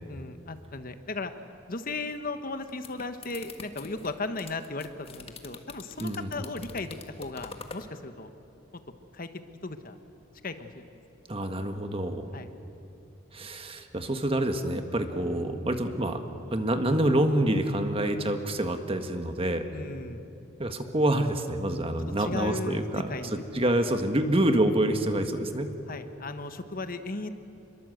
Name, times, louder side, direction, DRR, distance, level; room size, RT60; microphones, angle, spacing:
voice 1, 0.1-1.3 1.7-8.3 9.1-9.3 9.6-10.0 10.4-11.0 12.3-12.5 15.2-15.3 19.7-20.3 22.0-22.8 23.1-23.4 23.8-23.9 25.9-27.3, left 3 dB, 45° left, 9 dB, 1.2 m, -36 dB
sound 1, 2.5-7.9, left 4 dB, 30° left, 1.5 m, -45 dB
voice 2, 6.0-6.4 11.3-12.3 13.3-16.2 16.5-19.6 20.6-25.7, right 1 dB, 30° right, 7 dB, 1.5 m, -27 dB
27.0 x 22.5 x 8.0 m, 2.9 s
head